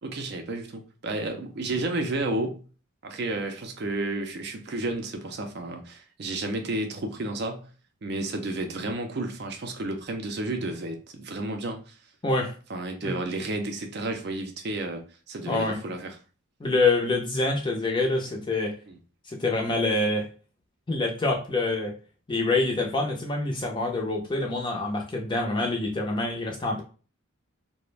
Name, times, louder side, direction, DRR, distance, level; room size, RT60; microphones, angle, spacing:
voice 1, 0.0-2.6 3.0-7.7 8.0-12.0 12.7-16.1 18.9-19.0 25.6-25.7, right 2 dB, 50° right, 5 dB, 0.4 m, -32 dB
voice 2, 12.2-12.5 13.0-13.2 15.5-15.8 16.6-18.8 19.3-20.3 20.9-21.9 22.3-26.8, left 2 dB, 20° left, 1 dB, 0.5 m, -26 dB
2.4 x 2.1 x 3.1 m, 0.36 s
head